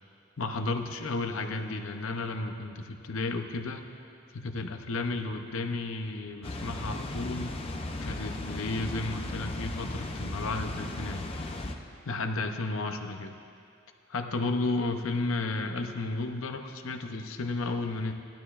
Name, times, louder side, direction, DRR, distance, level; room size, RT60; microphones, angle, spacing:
voice 1, 0.4-3.9 4.3-7.6 8.0-11.2 12.0-13.4 14.1-18.1, left 3 dB, 70° left, 5 dB, 0.7 m, -33 dB
Water, 6.4-11.7, left 2 dB, 30° left, 0.6 m, -36 dB
16.0 x 12.0 x 2.5 m, 2.5 s
head